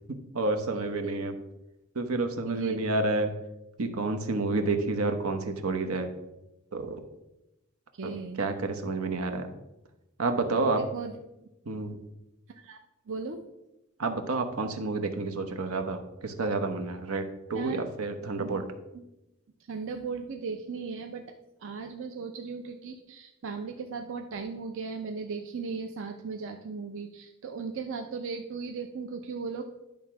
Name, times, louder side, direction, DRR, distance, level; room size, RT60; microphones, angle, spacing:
voice 1, 0.1-1.4 1.9-3.3 3.8-6.1 6.7-7.0 8.0-9.5 10.2-10.8 11.6-12.0 14.0-18.6, right 3 dB, 85° right, 5 dB, 1.0 m, -30 dB
voice 2, 2.5-2.8 7.9-8.4 10.7-11.1 11.4-11.5 12.5-12.8 13.1-13.5 17.5-17.9 18.4-18.5 19.7-21.3 21.6-29.6, right 5 dB, 65° right, 5 dB, 0.6 m, -37 dB
10.5 x 3.6 x 5.9 m, 0.92 s
head